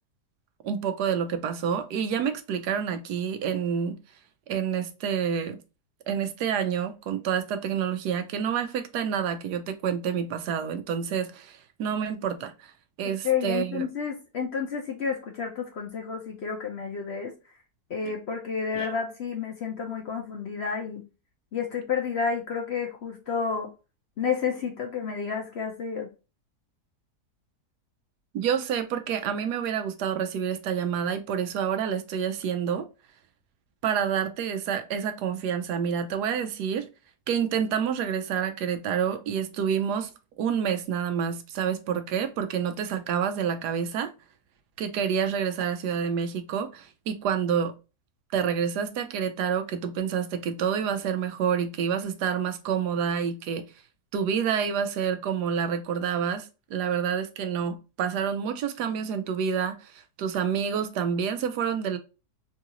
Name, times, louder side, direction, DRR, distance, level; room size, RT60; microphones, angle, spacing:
voice 1, 0.6-4.0 4.5-5.6 6.1-12.7 13.0-13.9 18.7-18.9 28.3-32.9 33.8-36.9 37.3-40.1 40.4-44.1 44.8-47.7 48.3-53.7 54.1-62.0, right 7 dB, 85° right, 1.2 m, -28 dB
voice 2, 13.0-17.3 17.9-21.0 21.5-23.7 24.2-26.1, left 6 dB, 55° left, 0.8 m, -30 dB
3.8 x 2.4 x 2.8 m
omnidirectional pair, 1.7 m